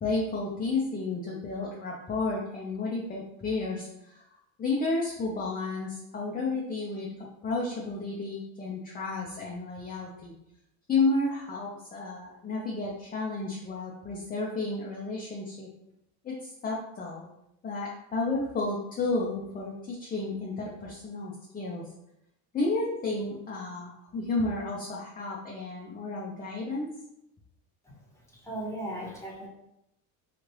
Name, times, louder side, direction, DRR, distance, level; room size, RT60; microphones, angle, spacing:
voice 1, 0.0-4.2 4.6-7.1 7.4-10.3 10.9-15.7 16.2-17.3 17.6-21.8 22.5-26.9, left 3 dB, 20° left, -3 dB, 0.5 m, -32 dB
voice 2, 27.8-29.5, right 1 dB, 5° left, -4 dB, 1.0 m, -38 dB
3.1 x 2.4 x 3.0 m, 0.82 s
cardioid pair, 110°, 40 cm